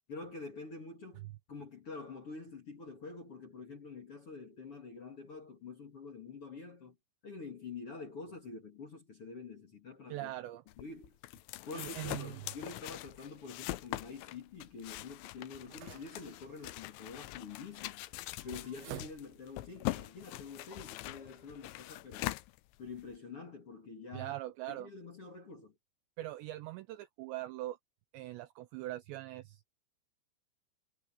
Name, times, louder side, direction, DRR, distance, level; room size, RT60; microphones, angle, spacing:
voice 1, 0.1-7.0 7.2-10.3 10.8-11.2 11.7-18.0 18.4-22.3 22.8-24.4 24.7-25.7, left 4 dB, 40° left, 2.1 m, -47 dB
voice 2, 10.1-10.6 11.7-12.3 24.1-24.9 26.2-27.8 28.1-29.6, right 16 dB, 85° right, 2.6 m, -41 dB
sound 1, 10.7-23.2, left 18 dB, 85° left, 3.0 m, -43 dB
sound 2, 12.4-19.7, right 11 dB, 65° right, 2.5 m, -55 dB
omnidirectional pair, 5.8 m